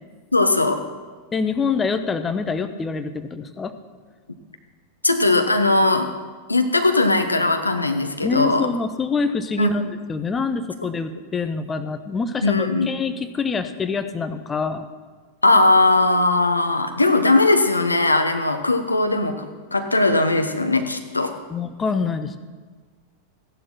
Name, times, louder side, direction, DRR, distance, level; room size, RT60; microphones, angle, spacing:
voice 1, 0.3-0.8 5.0-6.1 6.5-8.7 9.6-9.7 12.4-12.9 15.4-21.3, left 2 dB, 80° left, 7 dB, 1.2 m, -19 dB
voice 2, 1.3-3.7 8.2-9.8 10.1-14.9 21.5-22.4, left 5 dB, 20° left, 9 dB, 1.0 m, -25 dB
15.5 x 11.0 x 5.9 m, 1.5 s
figure-of-eight pair, 90°, 0 cm